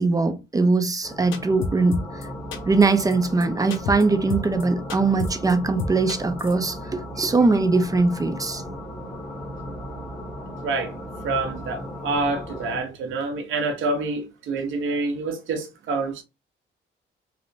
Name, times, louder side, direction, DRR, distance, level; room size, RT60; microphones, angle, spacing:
voice 1, 0.0-2.0 2.7-8.6, right 3 dB, 20° right, 0.5 m, -21 dB
sound 1, 1.0-12.8, equal, 25° left, 1.0 m, -36 dB
sound 2, 1.3-2.3 2.5-2.9 3.1-3.2 3.4-3.5 3.7-4.0 4.3-4.6 4.9-5.5 5.8-6.5, left 4 dB, 85° left, 0.5 m, -29 dB
voice 2, 10.6-10.9 11.2-16.2, right 3 dB, 75° right, 0.8 m, -27 dB
3.0 x 2.1 x 2.6 m
cardioid pair, 90°, 20 cm